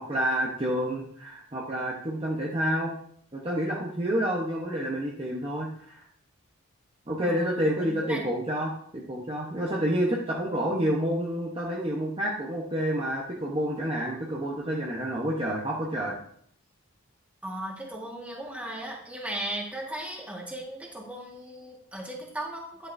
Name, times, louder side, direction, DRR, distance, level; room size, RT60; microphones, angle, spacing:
voice 1, 0.0-2.9 3.3-6.0 7.1-16.2, equal, 25° right, -3 dB, 1.0 m, -29 dB
voice 2, 7.2-8.3 17.4-22.9, right 1 dB, 5° right, -2 dB, 1.7 m, -37 dB
10.5 x 9.0 x 2.7 m, 0.64 s
head